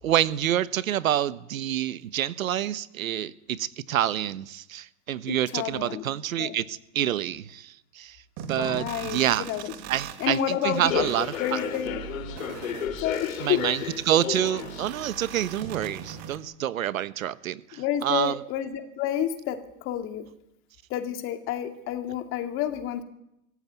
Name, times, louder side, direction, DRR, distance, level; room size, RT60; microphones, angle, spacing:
voice 1, 0.0-8.2 8.5-9.4 9.9-11.6 13.4-18.4, right 11 dB, 85° right, 16 dB, 1.3 m, -27 dB
voice 2, 5.3-6.0 6.4-6.5 8.6-9.7 10.2-11.1 11.4-12.0 13.0-13.6 17.8-20.3 20.9-23.0, left 10 dB, 30° left, 7 dB, 2.5 m, -29 dB
sound 1, 8.4-16.4, right 8 dB, 35° right, 2.6 m, -40 dB
Human voice / Subway metro underground, 10.7-16.2, left 9 dB, 75° left, 3.4 m, -34 dB
24.5 x 14.5 x 9.5 m, 0.80 s
hypercardioid pair, 150°, 40 cm